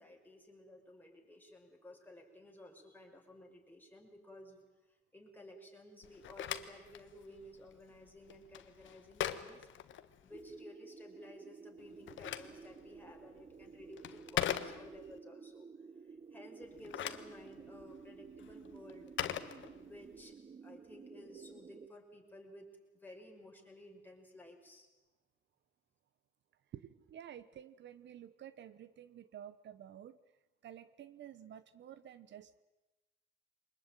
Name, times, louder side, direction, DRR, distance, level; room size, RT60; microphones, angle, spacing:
voice 1, 0.0-9.7 10.2-15.7 16.0-19.1 19.7-22.7 22.9-24.9, left 1 dB, 10° left, 1 dB, 5.6 m, -55 dB
Telephone, 6.0-10.6 11.8-15.2 16.6-20.2, left 10 dB, 75° left, 1.4 m, -42 dB
sound 1, 10.3-21.9, right 5 dB, 30° right, 0.9 m, -54 dB
voice 2, 26.7-30.2 30.6-32.6, right 10 dB, 65° right, 15 dB, 0.9 m, -51 dB
23.5 x 20.5 x 9.1 m, 1.1 s
cardioid pair, 90°, 20 cm